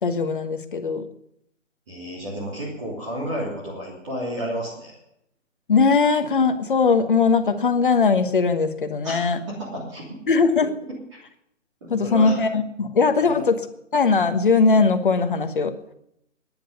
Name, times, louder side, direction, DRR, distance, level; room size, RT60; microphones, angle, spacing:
voice 1, 0.0-1.0 5.7-9.4 10.3-10.7 11.9-13.6 13.9-15.7, left 4 dB, 40° left, 9 dB, 1.3 m, -20 dB
voice 2, 1.9-5.0 9.0-10.2 11.8-12.4 13.2-13.4, equal, 25° right, -4 dB, 3.0 m, -32 dB
15.5 x 10.5 x 6.7 m, 0.76 s
hypercardioid pair, 175°, 38 cm